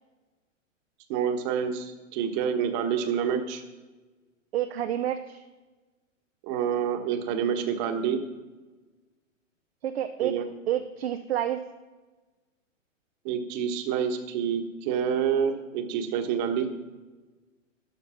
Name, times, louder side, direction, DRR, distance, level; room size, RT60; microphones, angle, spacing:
voice 1, 1.1-3.6 6.4-8.2 10.2-10.4 13.2-16.7, right 7 dB, 35° right, 6 dB, 1.3 m, -27 dB
voice 2, 4.5-5.4 9.8-10.4 10.7-11.6, right 11 dB, 50° right, 7 dB, 0.7 m, -29 dB
12.0 x 6.5 x 5.8 m, 1.2 s
figure-of-eight pair, 110°, 39 cm